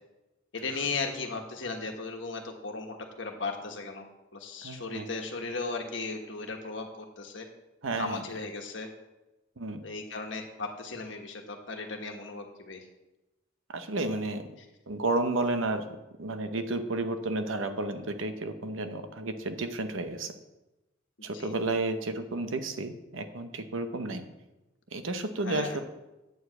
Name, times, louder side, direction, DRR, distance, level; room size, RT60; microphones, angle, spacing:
voice 1, 0.5-4.0 4.3-7.5 7.9-8.9 9.8-12.9 21.2-21.6 25.4-25.8, left 3 dB, 65° left, 3 dB, 1.4 m, -36 dB
voice 2, 4.6-5.1 7.8-8.2 9.6-9.8 13.7-14.4 14.9-15.9 16.2-20.3 21.2-24.2 24.9-25.8, right 2 dB, 85° right, 8 dB, 0.9 m, -32 dB
9.0 x 4.8 x 7.7 m, 1.0 s
head